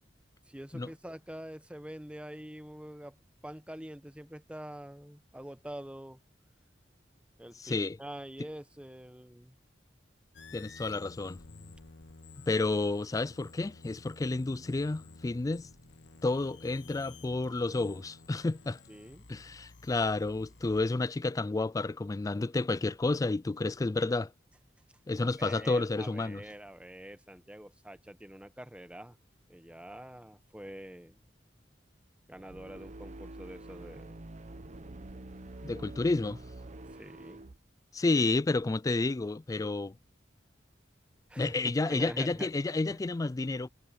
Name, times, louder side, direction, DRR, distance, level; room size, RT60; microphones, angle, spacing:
voice 1, 0.5-3.2 3.4-6.2 7.4-9.6 18.9-19.3 25.2-29.2 29.5-31.2 32.3-34.1 37.0-37.4 41.3-42.5, right 1 dB, 5° right, 1.1 m, -45 dB
voice 2, 7.6-8.0 10.5-11.4 12.5-15.7 16.2-18.8 19.3-24.3 25.1-26.4 35.6-36.4 37.9-40.0 41.4-43.7, left 3 dB, 20° left, 0.3 m, -30 dB
sound 1, 10.3-20.9, left 3 dB, 80° left, 1.3 m, -53 dB
sound 2, 32.3-37.6, right 2 dB, 40° right, 0.8 m, -46 dB
head